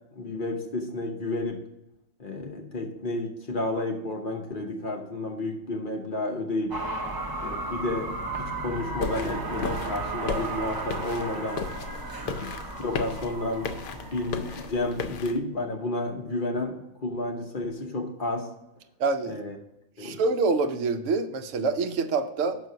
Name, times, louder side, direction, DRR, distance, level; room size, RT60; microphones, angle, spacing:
voice 1, 0.1-1.6 2.2-6.8 7.4-8.1 8.4-11.6 12.2-12.5 12.8-16.7 17.0-18.5 19.2-19.6 20.0-20.2, left 2 dB, 40° left, 2 dB, 1.1 m, -31 dB
sound 1, 6.7-15.3, right 2 dB, 30° right, 0.4 m, -35 dB
sound 2, 9.0-15.4, left 5 dB, 80° left, 1.1 m, -35 dB
voice 2, 19.0-19.3 20.0-22.6, right 4 dB, 65° right, 7 dB, 1.0 m, -26 dB
6.0 x 4.7 x 6.6 m, 0.87 s
omnidirectional pair, 1.5 m